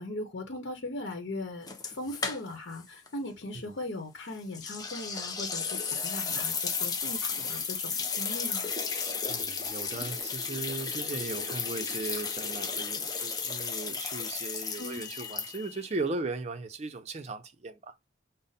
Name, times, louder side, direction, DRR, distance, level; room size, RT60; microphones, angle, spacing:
voice 1, 0.0-8.7 14.8-15.0, left 2 dB, 70° left, 0.9 m, -39 dB
sound 1, 1.7-2.8 3.1-3.2 4.5-15.8, left 5 dB, 20° left, 0.6 m, -34 dB
voice 2, 9.3-17.8, right 3 dB, 35° right, 0.5 m, -37 dB
5.2 x 2.0 x 4.0 m
head